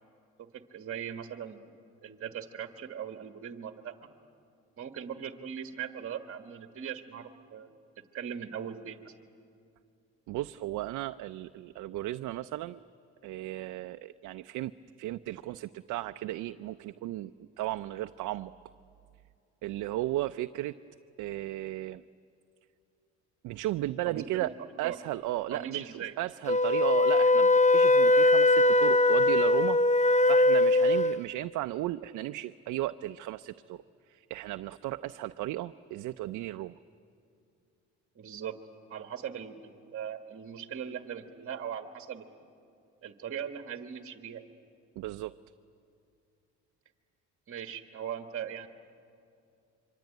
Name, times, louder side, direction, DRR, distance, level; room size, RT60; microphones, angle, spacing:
voice 1, 0.7-1.6 2.0-3.9 4.8-7.7 8.1-9.1 24.0-24.5 24.8-25.0 25.5-26.1 38.1-38.6 38.9-42.3 43.0-44.4 47.5-48.7, right 8 dB, 50° right, 6 dB, 1.6 m, -39 dB
voice 2, 10.3-12.8 13.2-14.7 15.0-17.3 17.6-18.5 19.6-20.8 21.2-22.0 23.4-24.5 24.8-29.8 30.2-33.8 34.1-36.8 45.0-45.3, right 15 dB, 90° right, 9 dB, 0.5 m, -35 dB
Wind instrument woodwind instrument, 26.5-31.2, left 2 dB, 25° left, 0.7 m, -21 dB
25.5 x 24.5 x 9.2 m, 2.5 s
cardioid pair, 90°, 30 cm